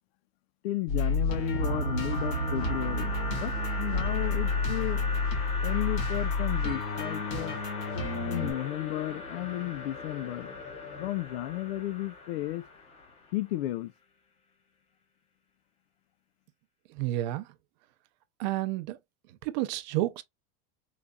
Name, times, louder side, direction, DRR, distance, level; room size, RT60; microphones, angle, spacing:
voice 1, 0.6-5.1 5.6-7.6 8.3-10.6 11.0-12.6 13.3-13.9, left 15 dB, 85° left, 0.5 m, -33 dB
sound 1, 0.9-8.5, left 2 dB, 45° left, 1.9 m, -30 dB
sound 2, 1.5-13.3, left 1 dB, 20° left, 0.8 m, -38 dB
voice 2, 16.9-17.5 18.4-19.0 19.4-20.2, right 15 dB, 50° right, 0.5 m, -30 dB
4.0 x 3.2 x 2.2 m
supercardioid pair, 165°, 30 cm